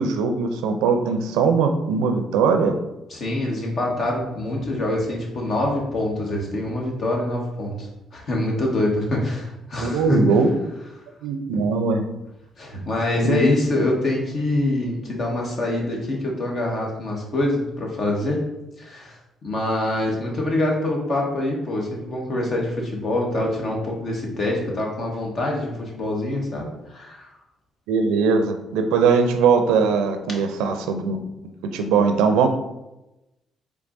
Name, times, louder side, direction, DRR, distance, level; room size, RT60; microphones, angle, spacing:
voice 1, 0.0-2.7 9.8-10.5 11.2-12.0 13.2-13.5 27.9-31.2 31.7-32.5, right 5 dB, 85° right, 6 dB, 0.4 m, -20 dB
voice 2, 3.1-10.3 11.5-11.6 12.6-18.4 18.8-19.2 19.4-27.3, left 1 dB, 55° left, -1 dB, 1.3 m, -25 dB
4.5 x 3.5 x 2.6 m, 0.94 s
supercardioid pair, 60°, 0 cm